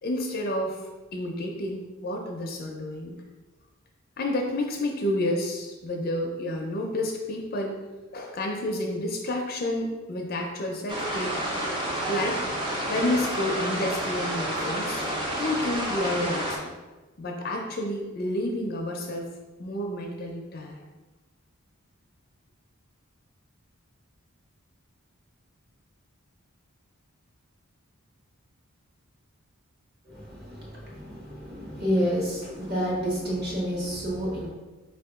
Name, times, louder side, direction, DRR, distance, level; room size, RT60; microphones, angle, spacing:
voice 1, 0.0-0.8 1.1-3.2 4.2-7.8 8.1-11.4 12.1-12.4 12.7-15.0 15.4-16.7 17.2-19.3 19.6-20.8, left 1 dB, 40° left, 1 dB, 0.4 m, -30 dB
sound 1, 10.9-16.6, right 1 dB, 20° right, 0.6 m, -29 dB
voice 2, 30.1-34.5, equal, 45° right, -4 dB, 1.3 m, -29 dB
4.6 x 2.8 x 3.5 m, 1.2 s
head